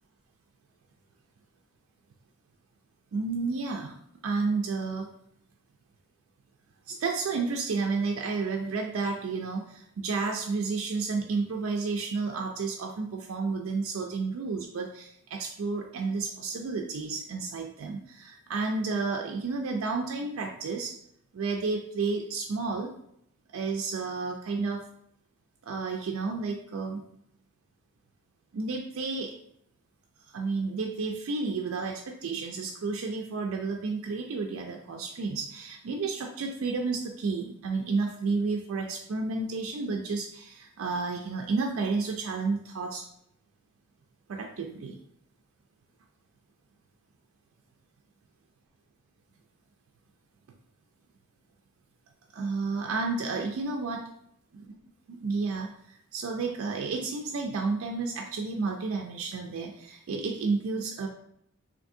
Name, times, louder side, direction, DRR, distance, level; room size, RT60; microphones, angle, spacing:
voice 1, 3.1-3.9 4.2-5.1 6.9-20.9 21.3-22.9 23.5-24.8 25.6-27.0 28.5-29.3 30.3-43.0 44.3-45.0 52.3-54.0 55.1-55.7 56.1-61.1, right 4 dB, 75° right, 2 dB, 0.4 m, -31 dB
3.5 x 2.5 x 2.6 m, 0.71 s
head